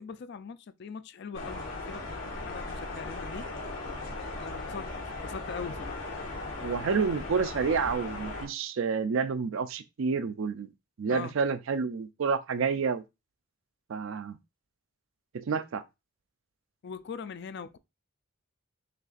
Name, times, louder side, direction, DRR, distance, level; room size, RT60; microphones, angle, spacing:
voice 1, 0.0-3.5 4.2-6.0 11.1-11.3 16.8-17.8, left 6 dB, 50° left, 0.3 m, -41 dB
sound 1, 1.3-8.5, left 2 dB, 80° left, 1.7 m, -38 dB
voice 2, 6.6-10.7 11.0-13.0 13.9-14.4 15.3-15.8, right 5 dB, 65° right, 0.4 m, -29 dB
6.5 x 2.5 x 2.4 m
head